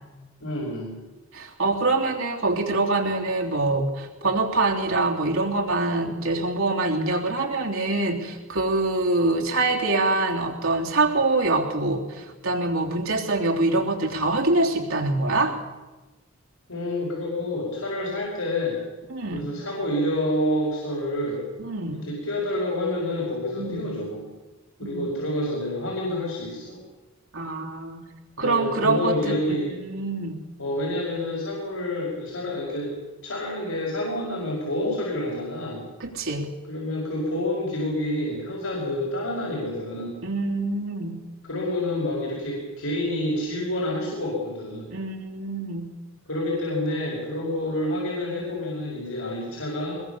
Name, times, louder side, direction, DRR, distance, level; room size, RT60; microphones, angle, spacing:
voice 1, 0.4-1.0 16.7-18.8 19.3-21.4 22.0-24.2 24.8-26.8 28.4-29.7 30.6-32.9 33.2-35.8 36.7-40.2 41.4-44.9 46.3-50.0, left 1 dB, 85° left, -3 dB, 5.2 m, -28 dB
voice 2, 1.3-15.6 19.1-19.5 21.6-22.0 23.5-23.9 24.8-25.1 27.3-28.1 28.4-30.4 36.0-36.5 40.2-41.2 44.9-45.9, right 2 dB, 80° right, 0 dB, 3.3 m, -25 dB
23.0 x 21.0 x 6.9 m, 1.2 s
head